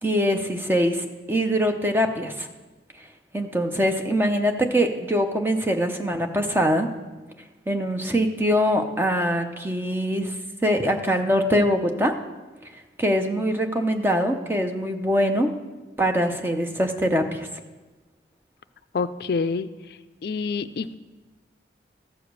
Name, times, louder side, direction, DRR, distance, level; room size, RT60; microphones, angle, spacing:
voice 1, 0.0-2.5 3.3-6.9 7.7-10.3 10.6-12.1 13.0-15.5 16.0-17.5, equal, 10° right, 4 dB, 0.6 m, -23 dB
voice 2, 18.9-19.7 20.2-20.9, left 4 dB, 65° left, 12 dB, 0.4 m, -26 dB
14.0 x 4.9 x 6.6 m, 1.2 s
head